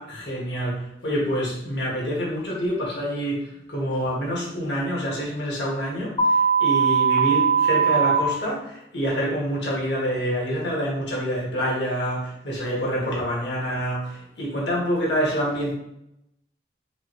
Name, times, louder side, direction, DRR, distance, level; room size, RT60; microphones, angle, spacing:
voice 1, 0.0-15.7, equal, 80° left, -4 dB, 1.6 m, -27 dB
sound 1, 6.2-8.2, right 6 dB, 30° left, 0.5 m, -19 dB
5.0 x 2.6 x 3.2 m, 0.83 s
head